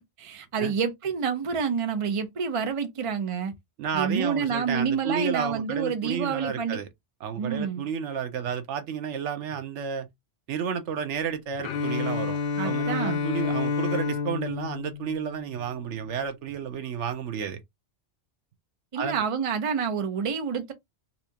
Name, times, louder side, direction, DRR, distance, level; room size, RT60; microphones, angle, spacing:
voice 1, 0.0-3.5 3.9-6.8 7.4-7.8 12.6-13.2 18.9-20.7, right 6 dB, 35° right, 0.6 m, -28 dB
voice 2, 3.8-6.9 7.2-10.1 10.5-12.4 12.6-17.6 18.9-19.2, right 7 dB, 75° right, 1.0 m, -31 dB
Bowed string instrument, 11.6-15.7, left 5 dB, 80° left, 1.1 m, -29 dB
4.2 x 2.4 x 2.8 m
omnidirectional pair, 1.2 m